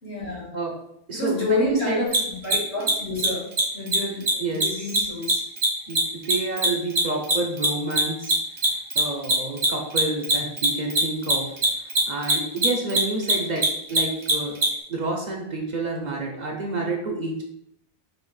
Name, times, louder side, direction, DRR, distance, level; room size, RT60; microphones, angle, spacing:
voice 1, 0.0-0.5 1.1-3.5 3.7-5.4, left 2 dB, 80° left, -6 dB, 2.4 m, -28 dB
voice 2, 1.1-2.1 4.4-5.3 5.9-8.3 8.9-11.5 12.1-14.6 14.9-17.4, right 2 dB, 45° right, 0 dB, 0.8 m, -29 dB
Mechanisms, 2.1-2.2 2.4-2.6 2.8-2.9 3.2-3.3 3.5-3.6 3.9-4.3 4.6-7.3 7.6-14.7, right 2 dB, 75° right, 1.4 m, -21 dB
6.2 x 2.6 x 3.2 m, 0.76 s
omnidirectional pair, 1.1 m